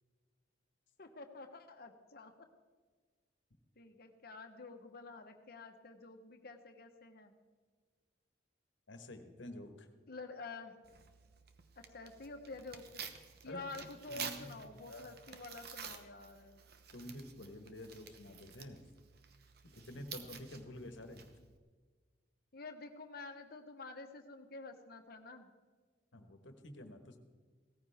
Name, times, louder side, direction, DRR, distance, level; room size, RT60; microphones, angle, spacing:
voice 1, 1.0-2.5 3.8-7.3 10.1-10.8 11.8-13.0 13.4-16.6 22.5-25.5, left 3 dB, 55° left, 6 dB, 1.1 m, -49 dB
voice 2, 8.9-9.9 13.4-13.8 14.1-14.6 14.9-15.1 16.9-18.9 19.7-21.3 26.1-27.2, left 1 dB, 80° left, 7 dB, 1.4 m, -49 dB
Tearing, 10.8-21.6, right 7 dB, 55° right, 0.9 m, -51 dB
17.0 x 14.0 x 3.5 m, 1.5 s
head